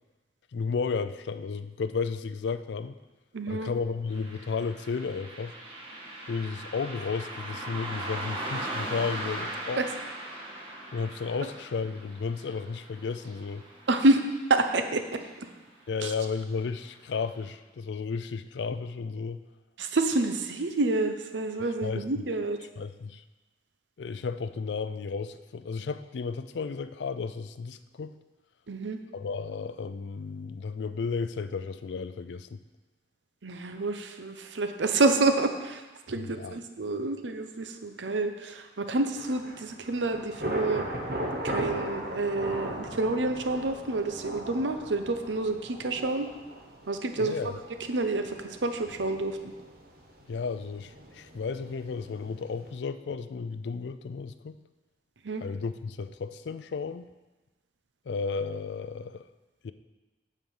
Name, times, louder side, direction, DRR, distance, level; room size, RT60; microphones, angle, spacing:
voice 1, 0.5-3.0 3.5-5.5 6.3-9.8 10.9-13.6 15.9-19.4 21.8-22.0 22.8-23.2 24.0-28.2 29.1-32.6 36.1-36.6 47.2-47.5 50.3-54.6 55.4-57.1 58.1-59.3 59.6-59.7, left 5 dB, 75° left, 12 dB, 0.4 m, -33 dB
voice 2, 3.3-3.7 9.8-9.9 13.9-14.2 14.5-15.5 16.0-16.1 19.8-22.6 28.7-29.0 33.4-40.8 41.4-46.3 46.9-47.3 47.9-49.5 55.2-55.4, right 2 dB, 85° right, 7 dB, 0.8 m, -28 dB
Car passing by, 4.1-14.9 15.2-15.3 16.2-16.4 16.9-17.0 17.5-17.6, right 1 dB, 30° right, 1.6 m, -39 dB
Thunder / Rain, 39.2-52.7, right 1 dB, 55° right, 1.2 m, -38 dB
9.1 x 4.7 x 7.1 m, 1.2 s
head